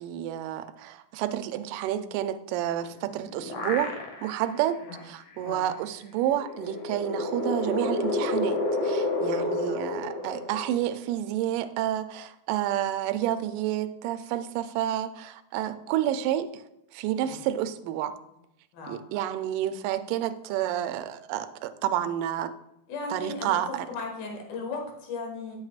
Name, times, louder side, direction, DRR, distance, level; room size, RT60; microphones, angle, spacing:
voice 1, 0.0-16.6 16.9-18.2 18.9-22.5 23.1-23.9, right 11 dB, 80° right, 9 dB, 2.0 m, -30 dB
sound 1, 2.8-4.5 4.9-5.0 6.3-11.1, left 2 dB, 60° left, 1.7 m, -30 dB
voice 2, 5.3-5.6 9.2-9.6 17.2-17.4 18.7-19.0 22.9-23.6 23.9-25.6, left 3 dB, 80° left, 1 dB, 3.3 m, -37 dB
9.9 x 7.5 x 2.4 m, 0.81 s
omnidirectional pair, 4.2 m